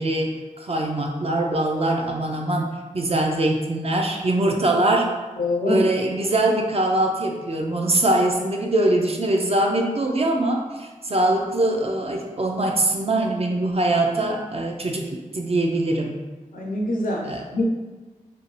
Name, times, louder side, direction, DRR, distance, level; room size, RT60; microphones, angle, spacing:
voice 1, 0.0-5.1 5.6-16.2 17.2-17.4, right 1 dB, 45° right, 1 dB, 0.5 m, -22 dB
voice 2, 5.4-5.8 16.5-17.6, left 2 dB, 90° left, -1 dB, 0.5 m, -25 dB
2.6 x 2.2 x 3.1 m, 1.3 s
wide cardioid pair, 50°, 14 cm